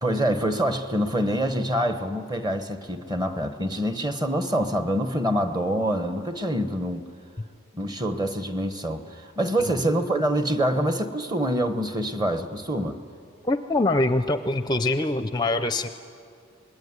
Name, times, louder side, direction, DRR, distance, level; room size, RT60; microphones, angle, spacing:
voice 1, 0.0-7.1 7.7-13.0, right 1 dB, 20° right, 9 dB, 1.1 m, -26 dB
voice 2, 13.4-15.9, left 2 dB, 20° left, 10 dB, 0.5 m, -24 dB
26.0 x 20.5 x 9.7 m, 2.5 s
head